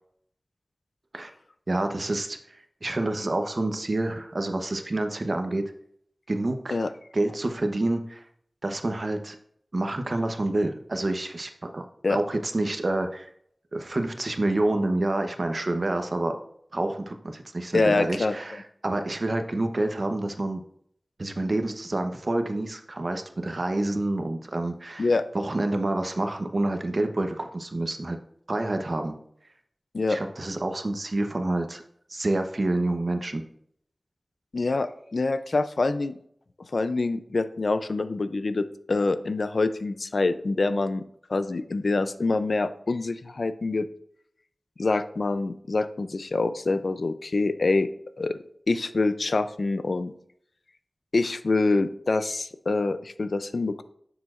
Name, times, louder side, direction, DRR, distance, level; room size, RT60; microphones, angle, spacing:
voice 1, 1.7-2.4 2.8-5.6 6.3-6.8 7.1-8.2 8.6-9.4 9.7-13.3 13.7-16.4 16.7-20.6 21.2-25.1 25.3-28.2 28.5-29.2 30.1-31.8 32.1-33.4, right 2 dB, 60° right, 6 dB, 0.9 m, -28 dB
voice 2, 17.7-18.3 25.0-25.2 29.9-30.2 34.5-36.1 36.7-41.0 41.3-43.9 44.8-47.9 48.2-48.4 48.7-50.1 51.1-53.8, left 3 dB, 80° left, 12 dB, 0.5 m, -25 dB
10.5 x 6.9 x 2.5 m, 0.67 s
wide cardioid pair, 55°, 0 cm